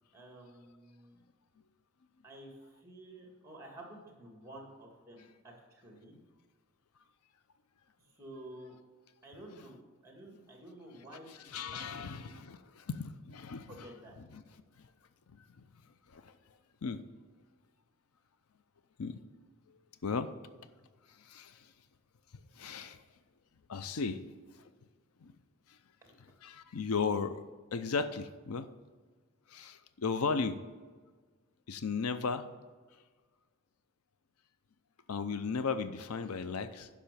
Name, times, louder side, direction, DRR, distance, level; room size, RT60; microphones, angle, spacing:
voice 1, 0.1-1.2 2.2-6.2 8.2-8.8 9.2-11.6 12.0-12.3 13.7-14.2 26.0-26.1, right 1 dB, 15° right, 1 dB, 2.1 m, -51 dB
voice 2, 11.3-13.9 14.2-14.4 16.1-16.3 16.8-17.0 19.0-19.2 20.0-20.3 21.2-21.7 22.5-23.0 23.7-24.2 25.2-25.3 26.4-27.4 27.7-28.7 29.5-30.6 31.7-32.5 35.1-36.9, left 5 dB, 85° left, 12 dB, 0.6 m, -35 dB
10.5 x 6.2 x 6.8 m, 1.4 s
head